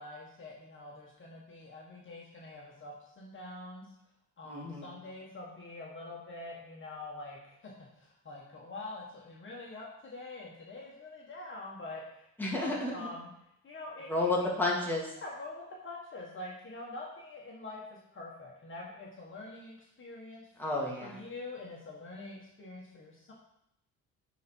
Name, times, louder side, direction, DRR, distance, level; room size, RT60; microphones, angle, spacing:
voice 1, 0.0-3.9 4.4-13.3 13.6-14.5 15.1-20.4 21.0-23.3, left 2 dB, 40° left, -3 dB, 1.7 m, -45 dB
voice 2, 4.4-4.9 12.4-13.1 14.1-15.1 20.6-21.2, left 2 dB, 5° left, -3 dB, 2.4 m, -31 dB
9.2 x 4.3 x 4.6 m, 0.77 s
cardioid pair, 90°, 30 cm